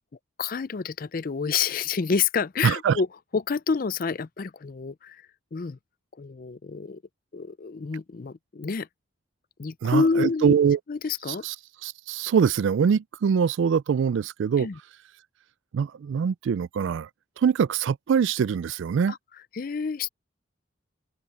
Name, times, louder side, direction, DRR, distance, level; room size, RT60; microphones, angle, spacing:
voice 1, 0.4-3.1 3.3-5.2 5.5-5.8 6.2-7.0 7.3-8.9 9.6-10.5 10.9-11.4 14.6-14.8 19.1-19.2 19.6-20.1, left 5 dB, 45° left, 0.4 m, -28 dB
voice 2, 2.6-3.0 9.8-10.8 11.3-11.6 11.8-14.7 15.7-17.1 17.4-19.1, right 7 dB, 65° right, 0.3 m, -23 dB
open air
head